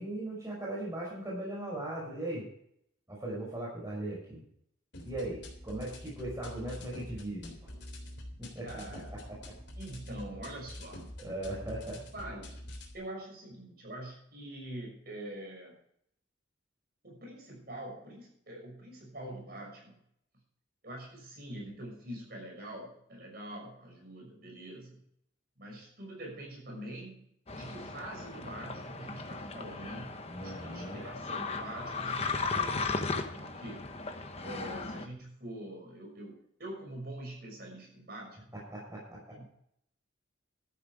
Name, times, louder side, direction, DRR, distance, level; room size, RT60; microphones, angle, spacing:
voice 1, 0.0-2.4 3.1-4.4 5.0-7.7 8.5-8.8 11.2-12.0 30.3-31.0 38.7-39.2, right 1 dB, 15° right, -4 dB, 5.9 m, -38 dB
sound 1, 4.9-12.9, left 1 dB, 60° left, 3.6 m, -46 dB
voice 2, 8.6-9.1 9.8-11.0 12.1-12.6 12.9-15.7 17.0-20.0 20.8-25.0 25.6-27.2 27.5-33.0 33.3-33.9 34.4-36.3 36.6-38.5 39.3-39.4, right 1 dB, 50° right, -1 dB, 6.5 m, -44 dB
sound 2, 27.5-35.1, left 4 dB, 30° left, 1.1 m, -36 dB
13.0 x 11.0 x 4.9 m, 0.69 s
head